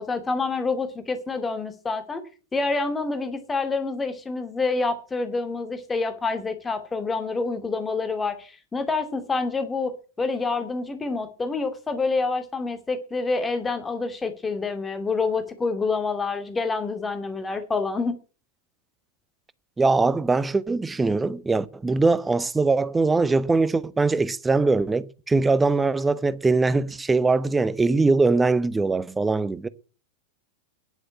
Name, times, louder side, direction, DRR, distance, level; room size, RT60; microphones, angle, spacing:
voice 1, 0.0-2.2 2.5-18.1, left 3 dB, 15° left, 2.3 m, -27 dB
voice 2, 19.8-29.7, right 3 dB, 10° right, 0.8 m, -22 dB
10.5 x 7.9 x 9.5 m
figure-of-eight pair, 90°, 0 cm